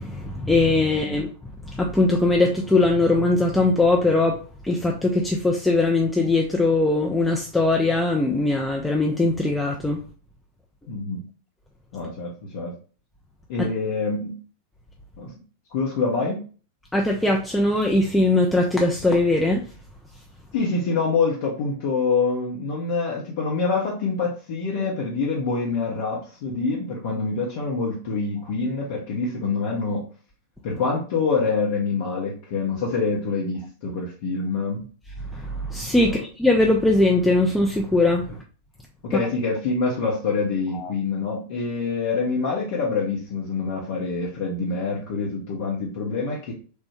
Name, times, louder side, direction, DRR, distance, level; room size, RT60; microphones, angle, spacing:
voice 1, 0.0-10.0 13.6-13.7 16.9-19.6 35.3-38.3 40.8-40.9, left 2 dB, 5° left, 0.4 m, -21 dB
voice 2, 10.9-11.2 11.9-12.8 13.5-14.4 15.2-15.3 15.7-16.4 20.5-30.0 30.6-34.8 36.0-36.2 39.0-46.5, left 4 dB, 50° left, 0.6 m, -26 dB
3.2 x 2.1 x 2.9 m
figure-of-eight pair, 90°, 0 cm